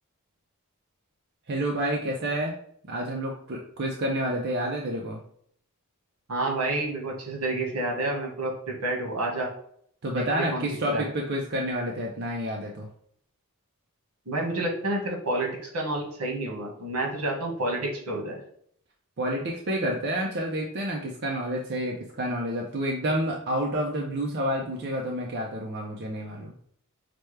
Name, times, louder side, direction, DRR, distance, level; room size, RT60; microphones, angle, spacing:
voice 1, 1.5-2.5 2.9-5.2 10.0-12.9 19.2-26.5, right 1 dB, 50° right, 0 dB, 0.6 m, -29 dB
voice 2, 6.3-9.5 10.1-10.2 10.5-11.0 14.2-18.4, right 2 dB, 80° right, -1 dB, 1.5 m, -29 dB
5.9 x 2.2 x 3.2 m, 0.65 s
head